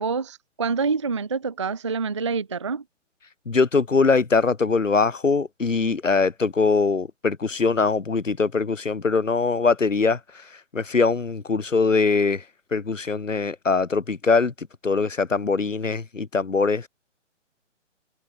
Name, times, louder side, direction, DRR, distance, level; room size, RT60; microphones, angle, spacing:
voice 1, 0.0-2.8, right 5 dB, 25° right, 0.4 m, -26 dB
voice 2, 3.5-16.9, left 4 dB, 90° left, 1.0 m, -22 dB
figure-of-eight pair, 135°, 37 cm